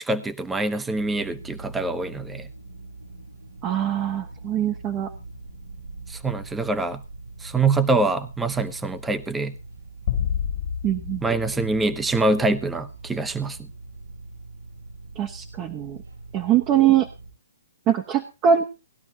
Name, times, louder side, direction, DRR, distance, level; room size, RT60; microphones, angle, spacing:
voice 1, 0.0-2.5 6.1-7.0 7.4-9.6 11.2-13.6, right 3 dB, 10° right, 10 dB, 1.0 m, -24 dB
sound 1, 1.0-17.3, right 3 dB, 70° right, 7.7 m, -42 dB
voice 2, 3.6-5.1 10.8-11.2 15.2-16.0 16.3-17.1 17.9-18.7, right 9 dB, 25° right, 4 dB, 1.2 m, -22 dB
sound 2, 10.1-12.7, left 8 dB, 55° left, 2.2 m, -30 dB
19.0 x 12.0 x 2.8 m, 0.31 s
hypercardioid pair, 130°, 0 cm